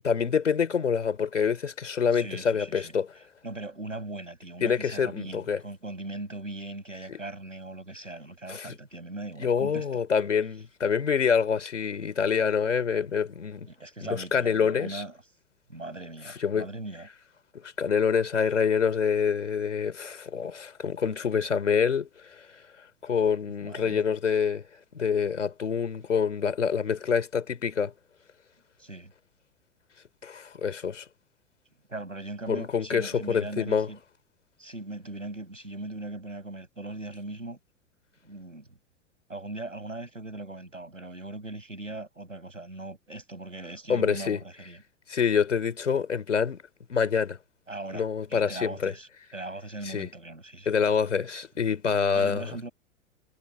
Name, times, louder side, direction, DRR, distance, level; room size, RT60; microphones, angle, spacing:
voice 1, 0.0-3.1 4.6-5.6 7.1-7.2 8.5-8.8 9.4-13.7 14.0-15.0 16.4-16.7 17.6-22.5 23.0-24.6 24.9-27.9 30.2-31.0 32.5-33.9 43.9-44.4 45.1-46.6 46.9-47.4 47.9-48.9 49.8-50.1 50.7-52.4, left 6 dB, 75° left, 4.0 m, -26 dB
voice 2, 2.1-10.0 13.6-15.2 15.7-17.1 23.6-24.0 28.8-29.1 31.9-34.0 34.6-37.6 38.2-38.8 39.3-44.8 47.7-50.8 52.1-52.7, right 2 dB, 85° right, 7.9 m, -39 dB
figure-of-eight pair, 95°, 37 cm